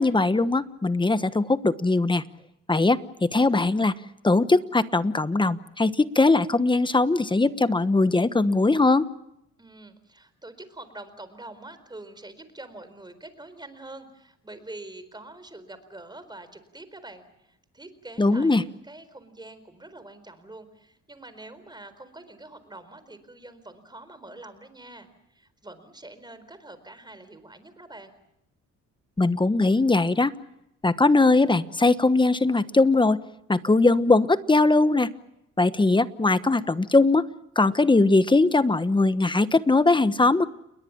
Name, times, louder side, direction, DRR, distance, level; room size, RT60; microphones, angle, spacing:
voice 1, 0.0-2.2 2.7-3.9 4.2-9.1 18.2-18.6 29.2-30.3 30.8-33.2 33.5-35.1 35.6-37.2 37.6-40.4, left 3 dB, 15° left, 13 dB, 1.2 m, -20 dB
voice 2, 9.6-28.1, right 2 dB, 15° right, 12 dB, 4.3 m, -45 dB
29.5 x 21.5 x 7.3 m, 0.81 s
cardioid pair, 90°, 30 cm